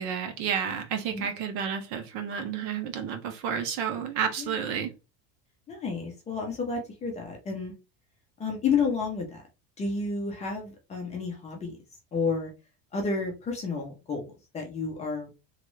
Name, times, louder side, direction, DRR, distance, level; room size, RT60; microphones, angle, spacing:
voice 1, 0.0-4.9, right 7 dB, 55° right, 6 dB, 0.8 m, -31 dB
voice 2, 4.4-4.7 5.7-7.7 8.4-9.4 9.8-11.8 12.1-12.5 12.9-15.3, left 4 dB, 20° left, 1 dB, 0.6 m, -31 dB
3.1 x 2.4 x 3.1 m, 0.28 s
cardioid pair, 170°, 34 cm